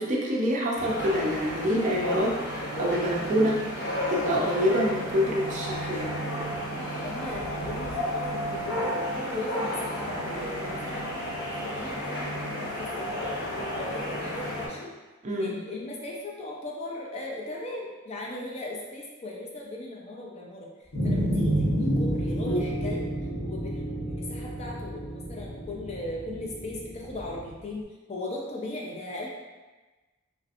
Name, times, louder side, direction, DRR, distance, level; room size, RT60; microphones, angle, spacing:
voice 1, 0.0-3.6 4.1-6.1 15.2-15.6, equal, 35° right, -2 dB, 0.4 m, -26 dB
sound 1, 0.7-14.7, equal, 55° left, 0.7 m, -32 dB
voice 2, 6.7-11.1 11.5-13.3 13.7-14.9 15.4-20.7 21.0-23.1 23.4-29.3, left 2 dB, 30° left, -2 dB, 0.4 m, -38 dB
sound 2, 20.9-27.5, right 1 dB, 70° left, 1.1 m, -29 dB
3.2 x 2.7 x 2.5 m, 1.2 s
head